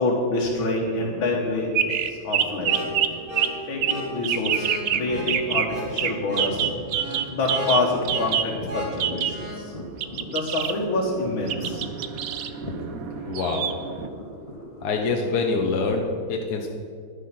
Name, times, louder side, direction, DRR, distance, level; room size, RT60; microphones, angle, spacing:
voice 1, 0.0-1.7 2.1-2.8 3.7-4.7 4.9-6.7 7.3-9.7 10.3-11.8, left 2 dB, 75° left, -4 dB, 2.1 m, -26 dB
sound 1, 0.9-16.0, equal, 15° left, 1.8 m, -39 dB
sound 2, 1.7-3.1 3.4-3.5 3.8-3.9 4.2-5.0 5.3-5.6 6.0-6.1 6.4-8.4 9.0-9.3 10.0-14.1, right 10 dB, 75° right, 0.8 m, -26 dB
sound 3, 2.6-9.6, equal, 45° right, 1.9 m, -35 dB
voice 2, 13.2-13.7 14.8-16.7, left 4 dB, 60° left, 2 dB, 1.2 m, -25 dB
11.0 x 9.9 x 5.9 m, 2.3 s
omnidirectional pair, 2.2 m